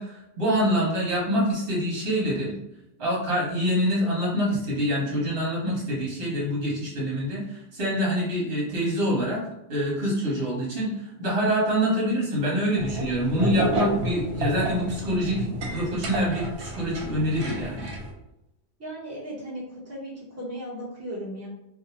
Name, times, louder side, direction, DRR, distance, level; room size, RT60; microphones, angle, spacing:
voice 1, 0.0-2.5 3.0-9.4 9.7-10.9 11.2-17.9, equal, 60° right, -5 dB, 1.2 m, -26 dB
sound 1, 12.8-18.1, right 1 dB, 75° right, 0.9 m, -30 dB
voice 2, 18.8-21.5, equal, 15° right, -6 dB, 0.8 m, -36 dB
2.7 x 2.0 x 2.9 m, 0.88 s
omnidirectional pair, 1.1 m